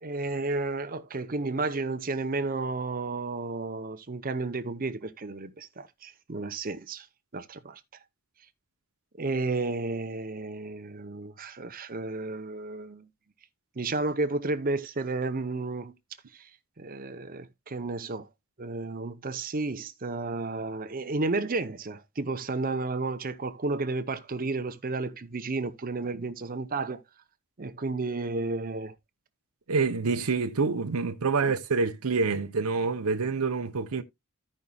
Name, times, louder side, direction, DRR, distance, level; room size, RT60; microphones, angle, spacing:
voice 1, 0.0-7.1 7.3-7.8 9.2-13.0 13.8-15.9 16.3-16.5 16.8-18.3 18.6-27.0 27.6-28.9, right 3 dB, 40° right, 0.8 m, -32 dB
voice 2, 29.7-34.0, right 4 dB, 85° right, 0.8 m, -27 dB
15.0 x 5.5 x 2.3 m
head